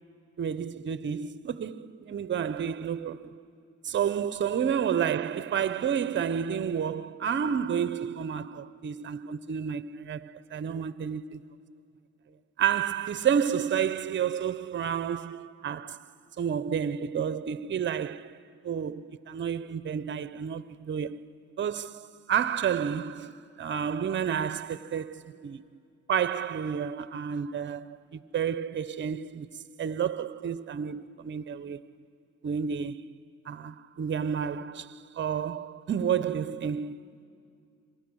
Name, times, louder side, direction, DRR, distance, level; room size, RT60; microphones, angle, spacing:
voice 1, 0.4-3.4 3.8-11.4 12.6-16.1 16.4-21.2 21.6-25.6 26.1-29.5 29.8-31.9 32.4-33.1 33.5-37.0, right 8 dB, 40° right, 0.7 m, -30 dB
26.5 x 25.0 x 6.3 m
cardioid pair, 90°, 30 cm